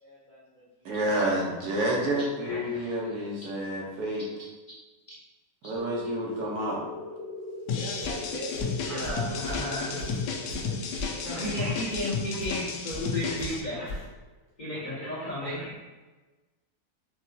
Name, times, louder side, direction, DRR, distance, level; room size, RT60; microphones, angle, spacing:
voice 1, 0.0-1.0 2.5-3.3 6.6-6.7 7.7-9.2 9.5-9.6 10.3-10.8 11.1-12.7 13.2-13.9 14.7-15.7, equal, 55° left, -6 dB, 0.5 m, -42 dB
voice 2, 0.8-4.5 5.6-6.8, right 1 dB, 75° right, -3 dB, 1.5 m, -29 dB
sound 1, 5.8-14.1, left 2 dB, 45° right, 0.7 m, -42 dB
sound 2, 7.7-13.6, left 5 dB, 85° left, 1.2 m, -33 dB
Walk footsteps, 8.0-8.3 8.5-12.6 12.9-13.1 13.4-14.1, equal, 90° right, 2.4 m, -39 dB
voice 3, 8.8-10.0 11.2-13.8 14.6-15.7, left 1 dB, 30° left, -8 dB, 1.0 m, -33 dB
4.9 x 3.0 x 2.8 m, 1.2 s
omnidirectional pair, 1.7 m